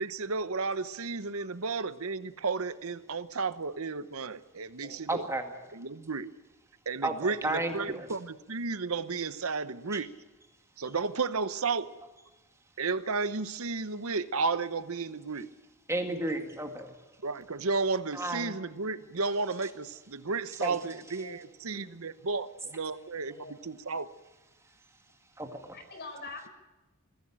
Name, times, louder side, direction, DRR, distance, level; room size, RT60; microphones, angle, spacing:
voice 1, 0.0-5.3 5.7-6.3 6.9-10.1 10.8-11.9 12.8-15.5 17.2-24.1, right 4 dB, 70° right, 13 dB, 0.9 m, -33 dB
voice 2, 5.1-5.5 7.0-8.1 15.9-16.9 18.1-18.5 20.6-20.8 25.4-25.8, right 2 dB, 15° right, 4 dB, 2.0 m, -32 dB
voice 3, 21.1-21.9 22.2-22.3 22.6-22.7 23.3-23.5 25.7-26.5, left 3 dB, 50° left, 7 dB, 4.4 m, -46 dB
21.5 x 15.5 x 10.0 m, 1.1 s
head